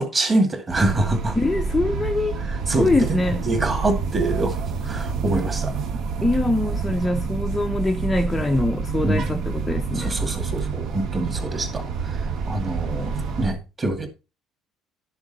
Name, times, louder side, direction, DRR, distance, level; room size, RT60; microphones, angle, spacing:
voice 1, 0.0-1.4 2.4-3.2 3.4-4.5 4.8-5.7 9.0-9.2 9.9-12.2 12.5-14.1, right 2 dB, 20° right, 2.3 m, -25 dB
sound 1, 0.7-13.5, right 5 dB, 45° right, 1.1 m, -28 dB
voice 2, 1.4-2.4 2.8-3.4 6.2-10.2, left 2 dB, 5° left, 0.7 m, -23 dB
11.5 x 6.9 x 4.1 m
cardioid pair, 180°, 0 cm